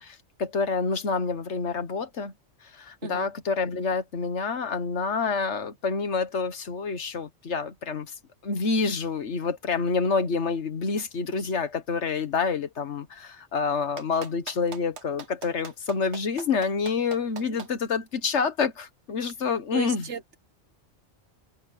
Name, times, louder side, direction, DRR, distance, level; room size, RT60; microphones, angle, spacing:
voice 1, 0.0-2.3 2.6-8.1 8.4-20.1, left 5 dB, 85° left, 1.6 m, -28 dB
Clapping, 14.0-17.7 19.2-19.3, right 5 dB, 75° right, 1.7 m, -40 dB
voice 2, 19.7-20.4, right 6 dB, 90° right, 1.6 m, -34 dB
omnidirectional pair, 1.2 m